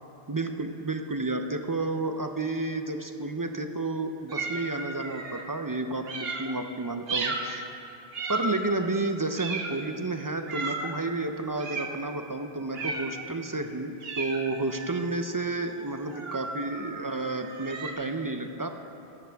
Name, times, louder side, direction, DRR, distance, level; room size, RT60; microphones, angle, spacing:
voice 1, 0.3-7.7 8.3-18.7, right 2 dB, 30° right, 6 dB, 0.4 m, -31 dB
sound 1, 4.3-5.4 6.0-6.5 7.1-7.5 8.1-8.8 9.4-9.9 10.5-10.9 11.6-12.0 12.7-13.2 14.0-17.9, right 3 dB, 75° right, 1.2 m, -35 dB
15.0 x 12.5 x 3.4 m, 2.8 s
omnidirectional pair, 1.0 m